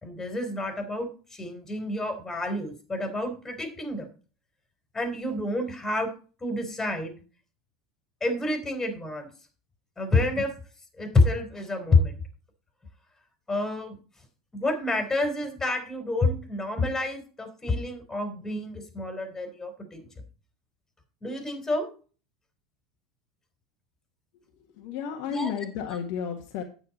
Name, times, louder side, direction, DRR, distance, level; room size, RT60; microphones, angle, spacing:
voice 1, 0.0-4.1 4.9-6.1 6.4-7.1 8.2-9.3 10.0-10.5 11.0-12.2 13.5-14.0 14.5-20.1 21.2-21.9 25.3-25.5, left 2 dB, 15° left, 6 dB, 3.5 m, -28 dB
voice 2, 24.7-26.6, left 7 dB, 55° left, 3 dB, 1.5 m, -32 dB
9.5 x 8.9 x 4.2 m, 0.38 s
figure-of-eight pair, 80°, 3 cm